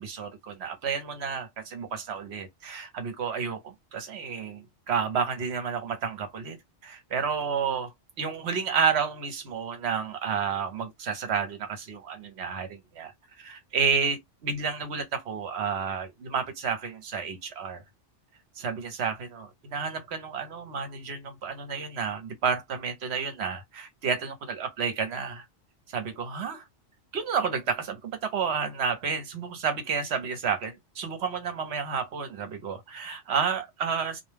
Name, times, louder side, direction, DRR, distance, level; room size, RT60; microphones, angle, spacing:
voice 1, 0.0-6.6 6.8-13.1 13.4-17.8 18.6-25.4 25.9-26.6 27.1-34.2, right 6 dB, 65° right, 1.0 m, -31 dB
2.3 x 2.1 x 3.1 m
omnidirectional pair, 1.2 m